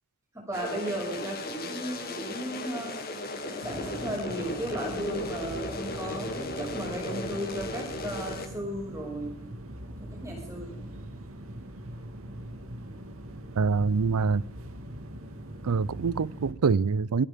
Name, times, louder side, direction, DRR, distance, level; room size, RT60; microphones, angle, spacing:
voice 1, 0.3-9.3 10.0-10.9, right 1 dB, 15° right, 6.0 m, -35 dB
sound 1, 0.5-8.5, left 2 dB, 40° left, 2.3 m, -36 dB
sound 2, 3.6-16.5, right 1 dB, 70° right, 2.2 m, -42 dB
voice 2, 13.6-14.4 15.6-17.3, right 5 dB, 90° right, 0.5 m, -25 dB
25.0 x 10.0 x 3.6 m
head